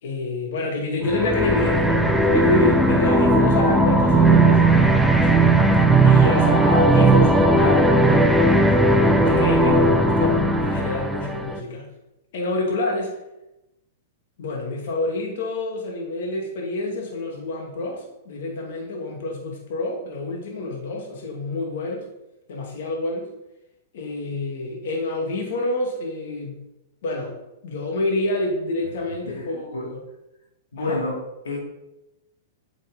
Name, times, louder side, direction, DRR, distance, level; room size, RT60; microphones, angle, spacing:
voice 1, 0.0-5.3 6.0-8.7 9.2-11.9 12.3-13.1 14.4-22.0 22.5-23.3 23.9-26.6 27.0-27.4 27.6-30.0 30.8-31.0, left 2 dB, 65° left, 0 dB, 2.3 m, -27 dB
sound 1, 1.1-11.6, right 2 dB, ahead, 0.9 m, -17 dB
voice 2, 29.2-29.9 30.7-31.6, left 2 dB, 85° left, -2 dB, 2.4 m, -30 dB
7.9 x 6.5 x 5.2 m, 0.92 s
hypercardioid pair, 115°, 0 cm